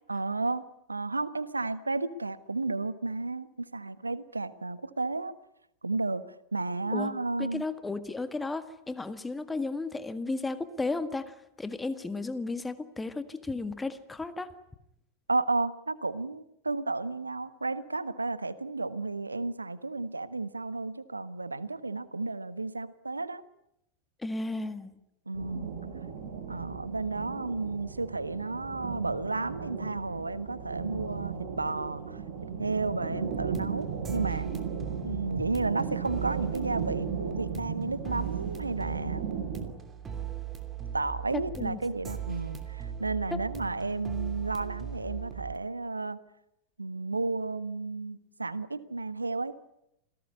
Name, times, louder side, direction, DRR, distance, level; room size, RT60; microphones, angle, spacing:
voice 1, 0.1-0.6 0.9-5.3 5.8-6.2 6.5-7.6 15.3-23.4 25.3-25.8 26.5-32.2 32.6-34.5 35.0-39.3 40.9-46.2 46.8-49.6, right 3 dB, 80° right, 15 dB, 1.4 m, -32 dB
voice 2, 7.4-14.5 24.2-24.9 41.3-41.8 43.3-43.4, left 3 dB, 10° left, 11 dB, 1.8 m, -34 dB
sound 1, 25.3-39.7, right 6 dB, 50° right, 5.8 m, -37 dB
sound 2, 33.3-45.6, right 8 dB, 20° right, 2.8 m, -39 dB
28.0 x 18.0 x 9.8 m, 0.82 s
figure-of-eight pair, 90°, 0 cm